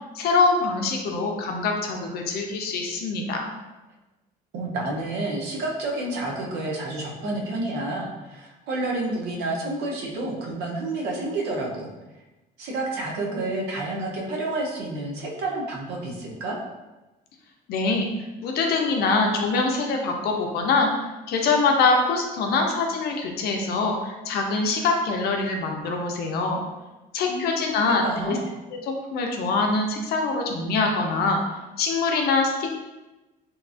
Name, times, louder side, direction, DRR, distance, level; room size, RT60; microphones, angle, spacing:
voice 1, 0.1-3.5 17.7-18.1 18.4-20.9 21.3-26.6 27.1-28.4 28.7-31.4 31.8-32.7, left 3 dB, 70° left, 2 dB, 0.5 m, -24 dB
voice 2, 4.5-11.9 12.6-16.6 27.2-28.4, right 2 dB, 85° right, -1 dB, 0.7 m, -29 dB
2.9 x 2.3 x 2.4 m, 1.1 s
cardioid pair, 110°, 17 cm